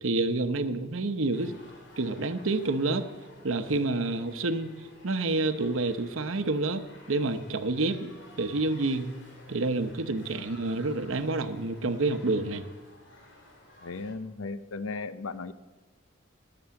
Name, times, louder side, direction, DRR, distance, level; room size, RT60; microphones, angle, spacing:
voice 1, 0.0-1.5 2.0-3.0 3.4-4.7 5.0-6.8 7.1-8.1 8.4-9.1 9.5-12.6, right 2 dB, 75° right, 10 dB, 0.8 m, -28 dB
sound 1, 1.3-14.2, left 1 dB, 60° left, 2.7 m, -53 dB
voice 2, 13.8-15.5, left 4 dB, 85° left, 13 dB, 0.6 m, -36 dB
19.0 x 6.9 x 7.0 m, 1.3 s
head